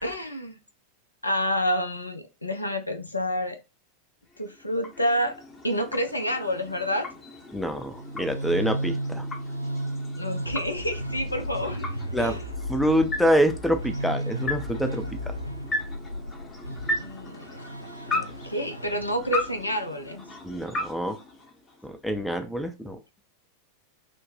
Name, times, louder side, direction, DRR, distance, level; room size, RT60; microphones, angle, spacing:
voice 1, 0.0-0.6 1.2-3.6 4.4-5.4 5.6-7.1 10.2-11.9 12.2-12.5 17.0-17.5 18.1-20.2, equal, 85° left, 6 dB, 0.5 m, -28 dB
sound 1, 4.3-22.0, left 2 dB, 25° left, 0.8 m, -37 dB
voice 2, 7.5-9.3 12.1-12.4 12.7-15.3 20.4-21.2 21.8-23.0, equal, ahead, 7 dB, 0.4 m, -26 dB
sound 2, 7.9-19.7, right 1 dB, 90° right, 0.4 m, -34 dB
3.1 x 2.1 x 2.6 m, 0.27 s
figure-of-eight pair, 90°, 0 cm